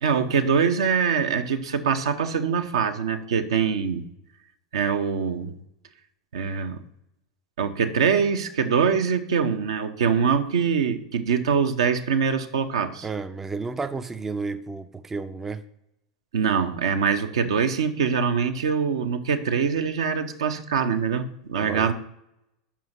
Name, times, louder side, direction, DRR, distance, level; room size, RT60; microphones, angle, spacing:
voice 1, 0.0-4.0 4.7-5.5 6.3-6.8 7.6-13.1 16.3-21.9, right 6 dB, 65° right, 0.8 m, -23 dB
voice 2, 13.0-15.6 21.5-21.9, right 4 dB, 10° right, 0.4 m, -32 dB
7.3 x 5.6 x 5.9 m
figure-of-eight pair, 85°, 3 cm